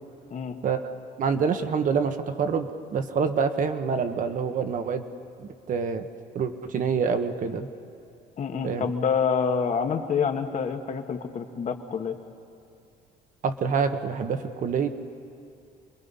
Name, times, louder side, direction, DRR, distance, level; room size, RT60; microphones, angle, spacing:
voice 1, 1.2-5.0 5.4-6.1 6.3-7.7 8.6-8.9 13.4-14.9, right 6 dB, 50° right, 8 dB, 1.3 m, -26 dB
voice 2, 8.4-12.1, left 6 dB, 45° left, 5 dB, 1.6 m, -27 dB
27.5 x 21.5 x 5.6 m, 2.4 s
cardioid pair, 110°, 17 cm